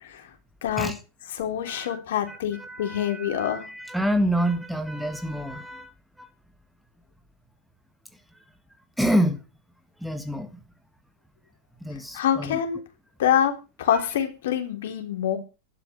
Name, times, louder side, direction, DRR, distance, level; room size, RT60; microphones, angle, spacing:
voice 1, 0.6-0.9 1.3-3.6 12.1-12.8 13.2-13.5 13.8-15.4, left 10 dB, 55° left, 3.8 m, -25 dB
voice 2, 1.7-2.0 2.3-5.9 6.2-6.3 9.0-9.4 10.0-10.6 11.8-12.6 13.9-14.1, equal, ahead, 1.7 m, -27 dB
12.5 x 11.5 x 7.0 m
figure-of-eight pair, 90°, 0 cm